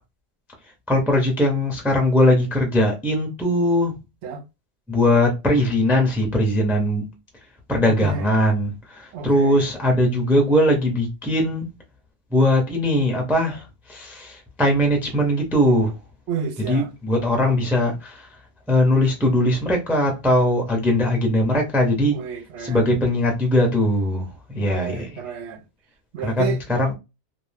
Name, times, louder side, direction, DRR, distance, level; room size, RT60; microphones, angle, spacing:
voice 1, 0.9-4.0 4.9-7.1 7.7-11.7 12.3-13.6 13.9-15.9 16.6-18.3 18.7-22.2 22.6-25.2 26.2-26.9, left 1 dB, ahead, 0.4 m, -20 dB
voice 2, 7.9-8.3 9.1-9.6 16.3-16.9 22.1-22.9 24.6-25.6 26.1-26.6, right 6 dB, 80° right, 0.9 m, -31 dB
2.6 x 2.0 x 3.2 m
omnidirectional pair, 1.1 m